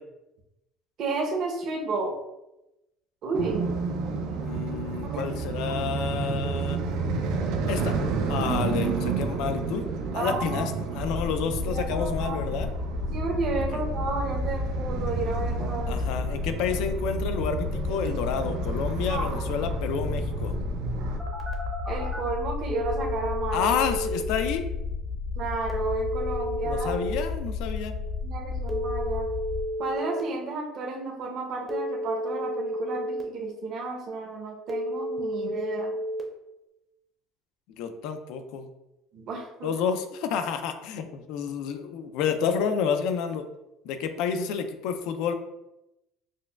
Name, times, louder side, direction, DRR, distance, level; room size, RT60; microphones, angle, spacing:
voice 1, 1.0-2.2 3.2-3.7 5.0-5.4 5.6-5.7 10.1-10.6 11.7-12.5 13.1-16.0 19.1-19.5 21.9-23.7 25.4-27.0 28.2-29.3 29.8-36.0 39.1-39.7, right 3 dB, 55° right, 0 dB, 0.8 m, -32 dB
sound 1, 3.3-21.2, right 4 dB, 80° right, 0.5 m, -31 dB
voice 2, 4.3-6.8 7.7-7.9 8.3-9.8 10.1-12.7 15.9-20.6 23.5-24.6 26.6-28.0 37.8-38.7 39.6-43.4 43.8-45.3, left 7 dB, 75° left, 8 dB, 0.4 m, -29 dB
sound 2, 11.0-29.6, left 4 dB, 55° left, 0.8 m, -33 dB
Telephone, 21.2-22.2 22.7-24.2 25.7-27.2 28.7-30.2 31.7-33.2 34.7-36.2, equal, 5° right, 0.6 m, -31 dB
6.1 x 2.1 x 2.3 m, 0.92 s
cardioid pair, 135°, 0 cm